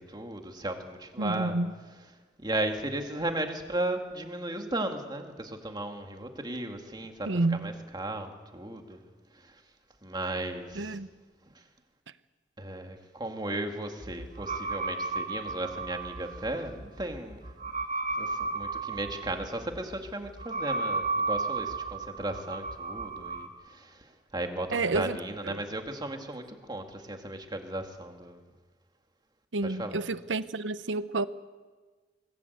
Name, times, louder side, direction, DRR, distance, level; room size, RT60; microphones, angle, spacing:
voice 1, 0.0-1.6 2.4-9.0 9.4-9.5 10.0-11.0 11.5-11.6 12.6-17.4 17.7-17.8 18.1-24.1 24.3-28.4 29.6-30.0, right 1 dB, 25° right, 2.2 m, -35 dB
voice 2, 1.2-1.7 7.3-7.7 10.7-11.1 24.7-25.2 25.4-25.6 29.5-31.3, right 2 dB, 80° right, 0.9 m, -29 dB
sound 1, 14.0-23.5, right 3 dB, 45° right, 2.4 m, -34 dB
24.5 x 20.0 x 8.2 m
head